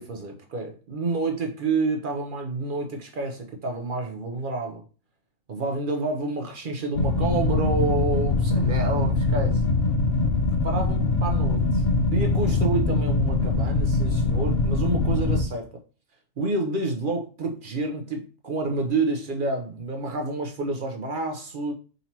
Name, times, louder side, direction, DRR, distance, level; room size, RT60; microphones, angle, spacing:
voice 1, 0.0-4.8 5.5-9.6 10.6-11.8 12.1-15.7 16.4-21.7, right 3 dB, 55° right, 0.6 m, -29 dB
sound 1, 6.9-15.4, left 3 dB, 55° left, 0.8 m, -23 dB
3.9 x 2.8 x 4.2 m
omnidirectional pair, 1.4 m